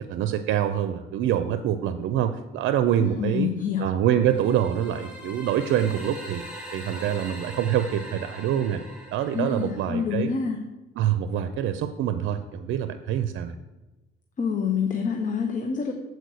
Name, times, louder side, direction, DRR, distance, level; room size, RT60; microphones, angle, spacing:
voice 1, 0.0-3.5 3.8-6.4 6.7-8.8 9.1-10.3 11.0-13.5, right 10 dB, 80° right, 10 dB, 0.5 m, -25 dB
voice 2, 3.0-3.9 9.3-10.6 14.4-15.9, left 6 dB, 40° left, 4 dB, 0.8 m, -27 dB
sound 1, 4.2-10.2, equal, 5° right, 2.1 m, -42 dB
8.0 x 4.5 x 6.3 m, 1.1 s
cardioid pair, 90°, 20 cm